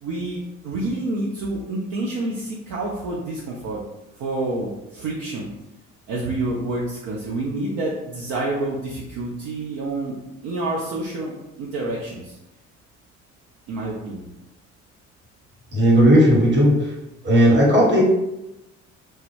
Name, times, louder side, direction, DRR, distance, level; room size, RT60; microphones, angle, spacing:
voice 1, 0.0-3.8 4.2-5.5 6.1-10.1 10.4-12.4 13.7-14.3, right 2 dB, 55° right, -4 dB, 0.6 m, -28 dB
voice 2, 15.7-16.9 17.2-18.0, equal, 30° right, -4 dB, 1.1 m, -15 dB
2.2 x 2.0 x 3.1 m, 0.92 s
figure-of-eight pair, 50°, 38 cm